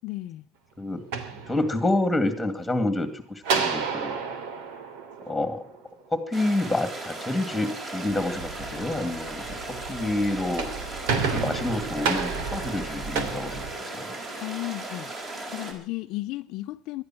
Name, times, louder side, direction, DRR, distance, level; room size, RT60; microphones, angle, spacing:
voice 1, 0.0-0.4 14.4-15.1 15.5-17.0, left 18 dB, 55° left, 0.7 m, -34 dB
sound 1, 0.9-2.1 3.4-5.9 10.3-14.4, right 5 dB, 90° right, 3.0 m, -31 dB
voice 2, 1.3-4.2 5.2-5.6 6.1-9.5 9.9-10.7 11.2-14.1, left 2 dB, 5° left, 2.4 m, -28 dB
sound 2, 6.3-15.7, right 2 dB, 25° right, 4.7 m, -37 dB
sound 3, 8.1-13.7, right 4 dB, 55° right, 3.9 m, -41 dB
18.5 x 12.5 x 6.0 m
cardioid pair, 175°, 0 cm